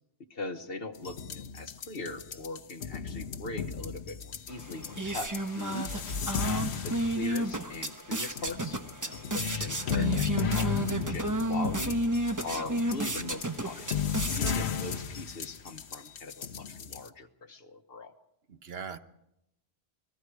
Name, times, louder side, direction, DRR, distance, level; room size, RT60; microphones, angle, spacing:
voice 1, 0.3-5.3 6.4-11.9 12.4-13.9 14.3-18.1, left 3 dB, 60° left, 8 dB, 1.4 m, -41 dB
sound 1, 0.9-17.1, left 7 dB, 75° left, 1.2 m, -35 dB
sound 2, 4.5-15.0, right 1 dB, 20° right, 1.0 m, -33 dB
voice 2, 5.6-5.9 18.5-19.0, right 5 dB, 70° right, 10 dB, 1.2 m, -39 dB
28.0 x 20.0 x 4.8 m, 0.80 s
omnidirectional pair, 1.1 m